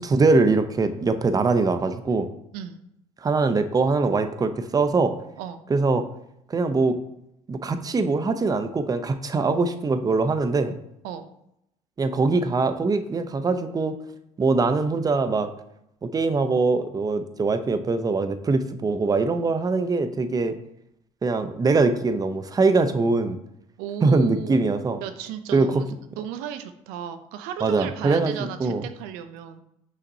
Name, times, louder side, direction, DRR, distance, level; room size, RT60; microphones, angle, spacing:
voice 1, 0.0-2.3 3.2-5.1 5.7-6.0 6.5-6.9 7.5-10.8 12.0-14.0 14.4-15.5 16.0-20.5 21.2-23.4 24.0-25.0 25.5-25.8 27.6-28.8, right 3 dB, 25° right, 9 dB, 0.6 m, -22 dB
voice 2, 23.8-24.7 25.0-25.8 26.1-29.6, right 9 dB, 85° right, 9 dB, 0.5 m, -35 dB
6.0 x 5.7 x 2.7 m, 0.79 s
supercardioid pair, 85°, 15 cm